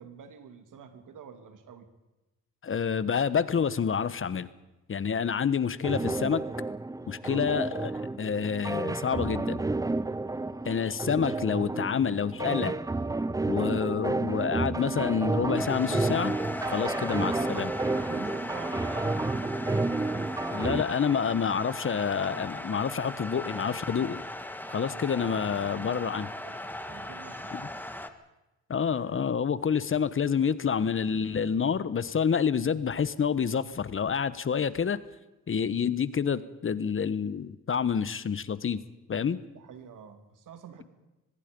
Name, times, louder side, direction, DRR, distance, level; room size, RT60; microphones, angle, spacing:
voice 1, 0.0-1.9 7.2-7.5 16.6-20.0 25.0-27.8 39.2-39.3 39.5-40.8, right 7 dB, 75° right, 8 dB, 2.8 m, -49 dB
voice 2, 2.6-4.5 4.9-6.4 7.1-7.9 8.2-9.6 10.6-12.8 13.5-16.3 16.7-17.7 20.5-24.2 24.7-26.3 27.5-27.7 28.7-35.0 35.5-38.8 39.1-39.4, left 7 dB, 40° left, 16 dB, 1.1 m, -28 dB
sound 1, 5.8-20.8, right 2 dB, 10° right, 0.6 m, -31 dB
sound 2, 15.6-28.1, left 1 dB, 5° left, 1.9 m, -38 dB
24.5 x 20.5 x 5.4 m, 1.0 s
cardioid pair, 85°, 32 cm